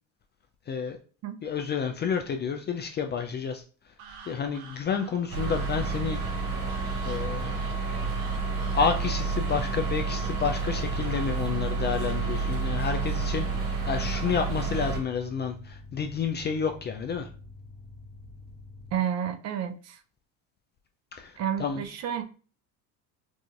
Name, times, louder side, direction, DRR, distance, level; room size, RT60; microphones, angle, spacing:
voice 1, 0.7-1.0 1.4-3.6 4.3-6.2 7.0-7.6 8.7-17.3 21.1-21.3 21.6-21.9, left 6 dB, 30° left, 5 dB, 0.3 m, -30 dB
sound 1, 4.0-14.7, right 5 dB, 80° right, 0.9 m, -50 dB
sound 2, 5.3-15.0, right 4 dB, 60° right, 1.9 m, -29 dB
sound 3, 9.0-18.9, left 2 dB, 5° left, 1.0 m, -47 dB
voice 2, 18.9-20.0 21.4-22.2, right 9 dB, 40° right, 8 dB, 0.5 m, -30 dB
4.7 x 2.6 x 2.4 m, 0.39 s
supercardioid pair, 100°, 40 cm